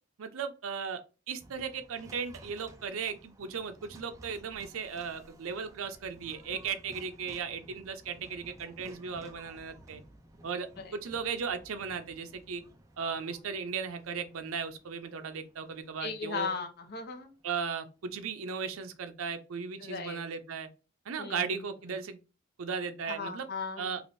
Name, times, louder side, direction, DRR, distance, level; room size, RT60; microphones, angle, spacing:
voice 1, 0.2-1.0 1.3-10.0 10.4-12.6 13.0-16.5 17.4-20.7 21.1-22.2 22.6-23.5 23.8-24.0, right 6 dB, 80° right, 0.5 m, -36 dB
sound 1, 1.4-17.6, right 1 dB, 15° right, 0.4 m, -55 dB
voice 2, 16.0-17.3 19.8-20.2 21.2-21.6 23.1-24.0, left 5 dB, 50° left, 0.6 m, -37 dB
3.4 x 2.5 x 2.6 m
head